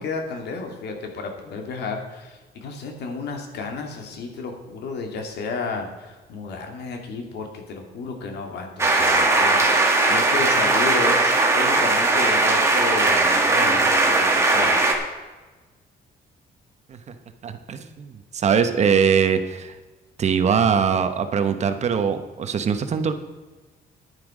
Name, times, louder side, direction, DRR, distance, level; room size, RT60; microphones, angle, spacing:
voice 1, 0.0-14.8, left 4 dB, 85° left, 3 dB, 2.3 m, -32 dB
sound 1, 8.8-14.9, right 2 dB, 15° right, 1.6 m, -19 dB
voice 2, 17.4-19.8 20.2-23.1, right 6 dB, 40° right, 9 dB, 0.9 m, -22 dB
11.0 x 10.0 x 5.0 m, 1.2 s
cardioid pair, 170°, 17 cm